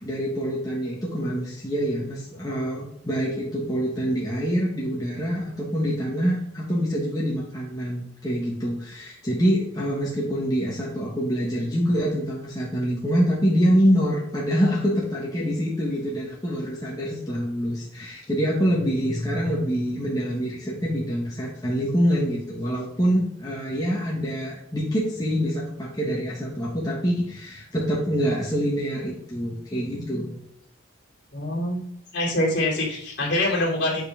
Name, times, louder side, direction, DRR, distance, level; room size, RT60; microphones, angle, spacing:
voice 1, 0.0-30.4, equal, 20° left, -5 dB, 1.4 m, -25 dB
voice 2, 31.3-31.8 32.1-34.0, left 1 dB, 55° left, -3 dB, 2.7 m, -24 dB
8.3 x 4.6 x 3.5 m, 0.71 s
head